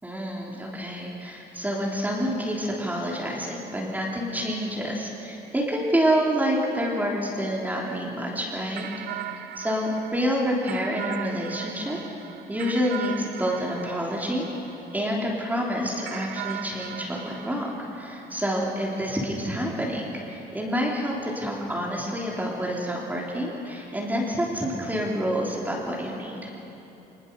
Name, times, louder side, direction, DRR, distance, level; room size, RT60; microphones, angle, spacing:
voice 1, 0.0-8.9 9.1-9.2 9.6-12.0 12.5-14.5 14.9-26.5, equal, 10° right, -3 dB, 3.2 m, -28 dB
sound 1, 8.8-15.3 16.0-18.8, right 12 dB, 75° right, 0.9 m, -39 dB
22.5 x 20.5 x 6.8 m, 3.0 s
cardioid pair, 110°, 17 cm